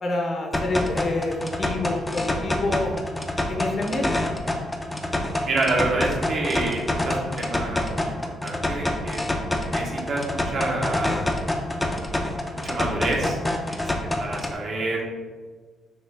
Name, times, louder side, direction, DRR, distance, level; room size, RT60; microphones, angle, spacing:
voice 1, 0.0-3.0 3.5-4.2, left 2 dB, 45° left, 2 dB, 0.8 m, -27 dB
sound 1, 0.5-14.5, left 1 dB, 15° left, 0.5 m, -27 dB
voice 2, 5.4-9.2 9.5-11.2 12.5-13.8 14.2-15.0, right 2 dB, 60° right, -2 dB, 1.1 m, -28 dB
6.1 x 2.4 x 3.4 m, 1.4 s
cardioid pair, 90°, 0 cm